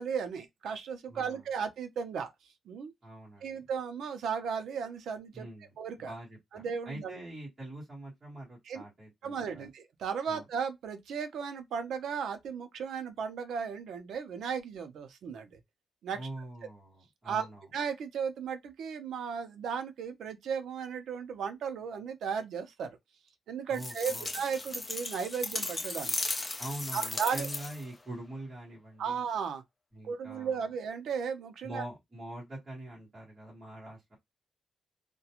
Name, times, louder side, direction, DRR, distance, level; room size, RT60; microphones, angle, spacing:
voice 1, 0.0-2.3 2.7-2.9 3.4-5.5 5.8-6.1 6.5-7.2 8.7-8.8 9.2-15.6 16.0-16.2 17.3-17.5 17.7-23.0 23.5-26.1 26.9-27.5 29.0-29.6 30.0-31.8, right 6 dB, 85° right, 0.5 m, -35 dB
voice 2, 1.1-1.4 3.0-3.6 5.3-9.7 10.3-10.4 16.1-17.6 23.7-24.3 26.6-29.2 29.9-30.6 31.6-34.2, right 1 dB, 20° right, 1.2 m, -44 dB
sound 1, 23.7-27.9, left 2 dB, 15° left, 0.4 m, -36 dB
2.4 x 2.2 x 2.8 m
wide cardioid pair, 180°, 0 cm